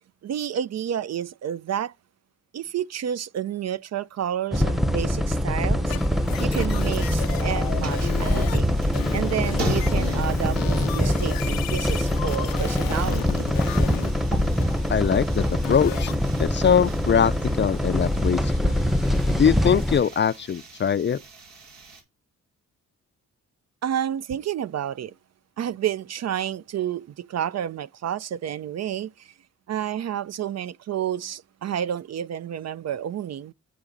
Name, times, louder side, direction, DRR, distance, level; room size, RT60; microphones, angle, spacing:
voice 1, 0.2-1.9 2.5-6.0 6.4-8.7 9.1-13.5 23.8-25.1 25.6-29.3 29.7-33.5, right 10 dB, 50° right, 0.5 m, -30 dB
sound 1, 4.5-20.0, left 1 dB, ahead, 0.7 m, -24 dB
sound 2, 5.4-22.0, equal, 85° right, 2.6 m, -40 dB
sound 3, 5.9-8.6 8.9-14.1 14.6-14.7 15.6-16.2, left 13 dB, 90° left, 0.6 m, -35 dB
voice 2, 14.9-16.1 16.4-17.3 17.6-18.7 19.4-21.2, left 7 dB, 35° left, 0.4 m, -22 dB
8.5 x 4.9 x 3.8 m
cardioid pair, 60°, 33 cm